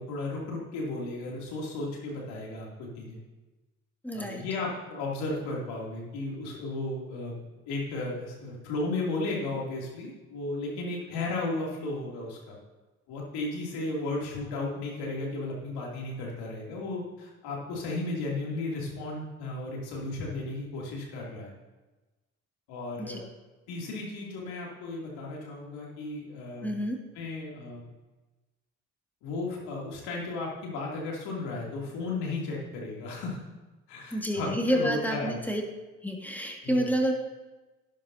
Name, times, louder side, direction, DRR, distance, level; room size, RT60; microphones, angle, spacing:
voice 1, 0.0-3.2 4.1-7.4 7.7-12.6 13.1-21.5 22.7-23.2 23.7-26.7 27.1-27.8 29.2-33.4 33.9-35.4 36.6-36.9, left 2 dB, 70° left, -3 dB, 2.9 m, -34 dB
voice 2, 4.0-4.4 23.0-23.2 26.6-27.0 34.1-35.6 36.0-37.1, equal, 5° left, 1 dB, 2.0 m, -29 dB
12.5 x 10.0 x 2.8 m, 1.1 s
hypercardioid pair, 50°, 40 cm